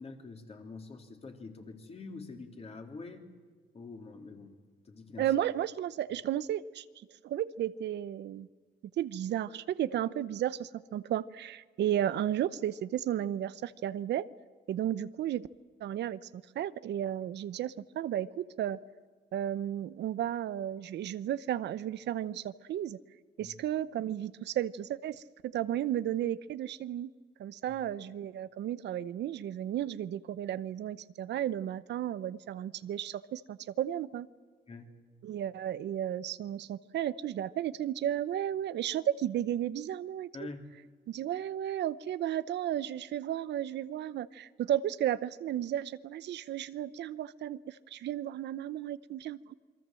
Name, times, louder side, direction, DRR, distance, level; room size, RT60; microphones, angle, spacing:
voice 1, 0.0-3.2 3.7-4.6 4.9-5.3 23.4-23.6 27.7-27.8 34.7-35.0 40.3-40.7, left 3 dB, 35° left, 4 dB, 3.5 m, -45 dB
voice 2, 5.2-6.8 7.2-8.5 9.0-14.3 14.7-15.5 15.8-18.8 19.3-23.0 23.4-27.1 27.4-34.3 35.2-40.3 41.1-49.5, right 11 dB, 75° right, 15 dB, 0.8 m, -33 dB
28.0 x 22.5 x 7.7 m, 1.5 s
cardioid pair, 125°, 18 cm